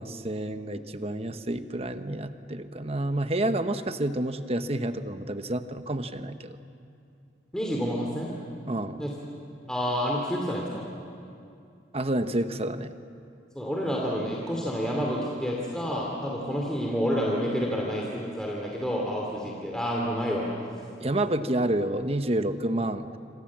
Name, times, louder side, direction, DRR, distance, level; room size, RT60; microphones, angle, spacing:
voice 1, 0.0-6.6 8.7-9.0 11.9-12.9 21.0-23.2, right 1 dB, 35° right, 9 dB, 1.0 m, -29 dB
voice 2, 7.5-8.3 9.0-9.1 9.7-10.8 13.5-20.5 21.2-21.3, equal, 5° left, -2 dB, 2.7 m, -29 dB
27.5 x 26.0 x 7.4 m, 2.5 s
head